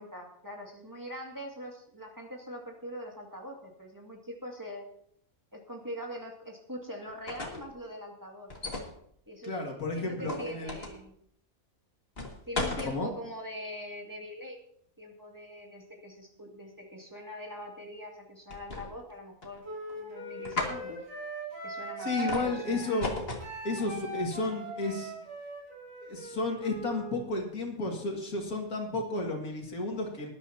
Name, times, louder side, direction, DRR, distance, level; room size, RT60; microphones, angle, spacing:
voice 1, 0.0-4.9 5.5-8.5 9.3-11.1 12.5-14.6 15.0-19.6 19.9-21.0 21.6-23.1, equal, 15° right, -1 dB, 2.2 m, -43 dB
sound 1, 7.1-7.7 8.5-8.9 10.3-11.0 12.2-12.9 18.5-19.1 19.4-19.9 20.4-20.8 22.3-22.5 23.0-23.5, left 2 dB, 45° left, 2.3 m, -35 dB
voice 2, 9.4-10.7 12.8-13.1 22.0-23.1 23.6-25.1 26.0-30.3, left 2 dB, 90° left, 1 dB, 2.7 m, -32 dB
Wind instrument woodwind instrument, 19.6-27.1, right 2 dB, 65° right, 6.1 m, -40 dB
19.5 x 11.5 x 2.8 m, 0.69 s
omnidirectional pair, 1.5 m